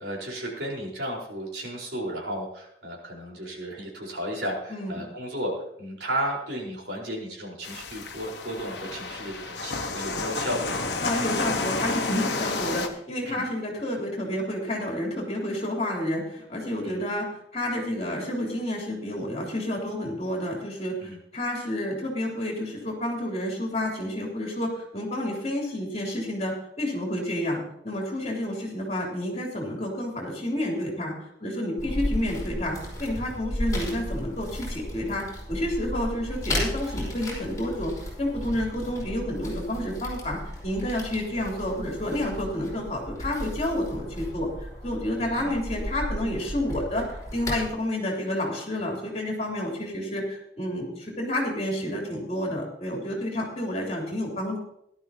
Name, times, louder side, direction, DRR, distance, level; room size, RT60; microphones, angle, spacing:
voice 1, 0.0-10.8 13.2-13.5 16.8-17.0 21.0-21.2 31.8-32.0 45.2-45.6, equal, 80° right, -2 dB, 4.5 m, -34 dB
voice 2, 4.7-5.1 11.0-17.3 17.5-31.1 31.4-37.9 38.2-44.5 44.8-47.0 47.3-54.6, left 1 dB, 40° left, -1 dB, 3.4 m, -30 dB
sound 1, 7.6-12.9, left 3 dB, 75° left, 1.3 m, -30 dB
sound 2, 31.8-47.7, left 1 dB, 20° left, 4.9 m, -34 dB
17.0 x 12.0 x 2.9 m, 0.75 s
head